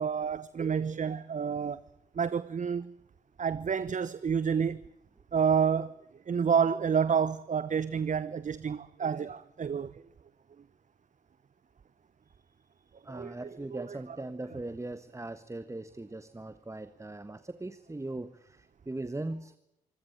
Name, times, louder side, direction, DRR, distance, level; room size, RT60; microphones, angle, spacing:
voice 1, 0.0-1.8 2.2-2.9 3.4-4.8 5.3-5.9 6.3-9.9 13.1-13.3 13.7-13.8, right 7 dB, 40° right, 0.9 m, -29 dB
voice 2, 12.8-19.5, right 2 dB, 15° right, 1.4 m, -40 dB
25.5 x 17.0 x 8.9 m
hypercardioid pair, 45°, 20 cm